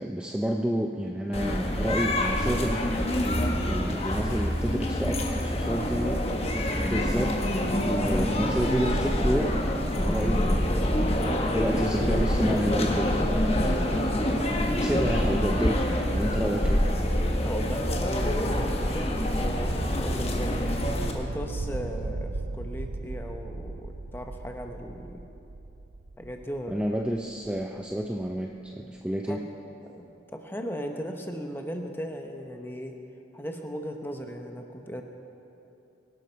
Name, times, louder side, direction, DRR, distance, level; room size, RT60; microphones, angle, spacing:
voice 1, 0.0-2.8 3.6-6.2 6.7-7.4 7.8-9.6 9.9-13.2 13.6-16.8 26.7-29.4, equal, 5° right, 1 dB, 0.5 m, -30 dB
sound 1, 1.3-21.1, left 1 dB, 30° left, 1.3 m, -26 dB
voice 2, 17.4-20.7 21.1-25.2 26.2-26.8 29.3-29.4 29.8-33.0 33.3-35.0, equal, 10° left, 4 dB, 1.0 m, -37 dB
sound 2, 17.5-28.2, right 2 dB, 80° right, 0.6 m, -39 dB
23.0 x 12.0 x 4.6 m, 2.9 s
head